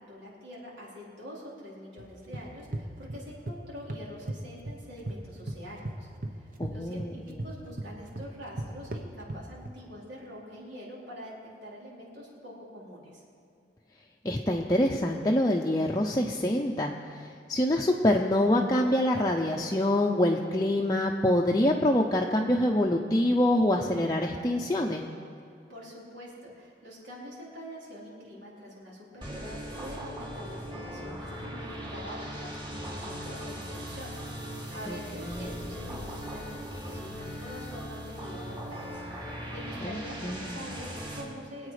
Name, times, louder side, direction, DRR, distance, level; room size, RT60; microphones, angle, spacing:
voice 1, 0.1-13.2 25.7-41.7, equal, 75° right, -5 dB, 4.2 m, -45 dB
sound 1, 2.0-3.6 3.9-5.2 5.5-9.8, right 1 dB, 45° right, 1.0 m, -37 dB
voice 2, 6.6-7.4 14.2-17.0 17.5-25.0 34.9-35.0 35.2-35.6 39.8-40.0 40.2-40.6, left 1 dB, 20° left, 0 dB, 0.6 m, -25 dB
sound 2, 29.2-41.2, equal, 25° right, 2.7 m, -39 dB
23.5 x 8.7 x 4.9 m, 2.4 s
head